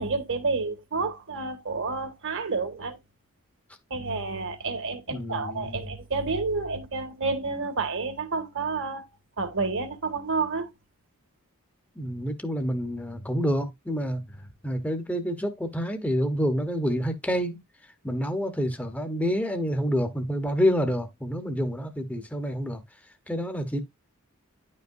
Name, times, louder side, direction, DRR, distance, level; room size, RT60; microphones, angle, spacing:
voice 1, 0.0-3.0 3.9-9.1 9.4-10.7, right 4 dB, 60° right, 1.4 m, -29 dB
voice 2, 5.1-5.8 12.0-14.2 14.6-17.6 18.0-22.8 23.3-23.8, equal, 5° left, 0.9 m, -28 dB
10.0 x 5.4 x 2.6 m
head